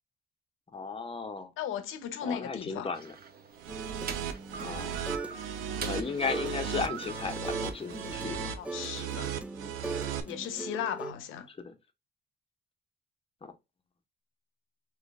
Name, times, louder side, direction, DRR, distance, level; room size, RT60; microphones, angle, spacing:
voice 1, 0.7-1.5 2.2-3.1 4.6-5.0 5.9-8.6 11.5-11.8 13.4-13.5, left 5 dB, 30° left, 1.0 m, -35 dB
voice 2, 1.6-2.9 8.6-9.3 10.3-11.5, left 9 dB, 90° left, 0.8 m, -36 dB
sound 1, 2.9-8.2, right 6 dB, 50° right, 0.8 m, -44 dB
sound 2, 3.6-10.2, right 8 dB, 80° right, 0.7 m, -36 dB
sound 3, 3.7-5.4 5.7-11.1, right 3 dB, 5° right, 0.4 m, -41 dB
3.8 x 3.2 x 3.5 m
cardioid pair, 90°, 20 cm